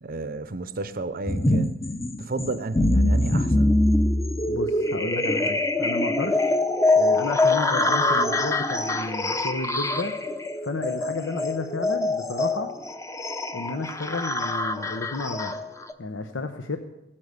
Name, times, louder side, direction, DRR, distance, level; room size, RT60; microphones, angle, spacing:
voice 1, 0.0-1.9 2.2-3.8, right 3 dB, 50° right, 12 dB, 0.7 m, -32 dB
sound 1, 1.3-15.9, left 2 dB, 15° left, 0.8 m, -24 dB
voice 2, 4.5-6.5 7.0-10.1 10.6-12.7 13.5-15.6 16.0-16.8, left 3 dB, 80° left, 6 dB, 0.9 m, -32 dB
16.0 x 8.7 x 8.1 m, 0.92 s
head